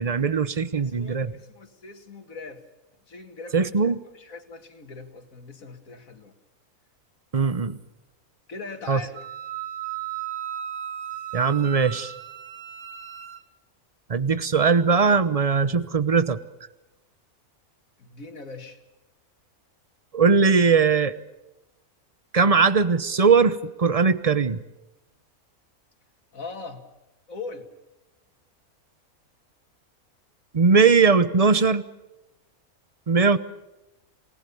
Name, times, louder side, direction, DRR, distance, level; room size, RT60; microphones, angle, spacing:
voice 1, 0.0-1.4 3.5-4.0 7.3-7.8 8.9-9.0 11.3-12.1 14.1-16.4 20.1-21.2 22.3-24.6 30.5-31.8 33.1-33.4, right 5 dB, 30° right, 15 dB, 0.7 m, -20 dB
voice 2, 0.7-2.6 3.1-6.3 8.5-9.2 18.0-18.8 26.3-26.8 27.3-27.7, left 4 dB, 65° left, 7 dB, 2.5 m, -41 dB
Wind instrument woodwind instrument, 9.1-13.4, right 11 dB, 75° right, 1.9 m, -35 dB
27.5 x 18.5 x 7.0 m, 0.99 s
omnidirectional pair, 1.5 m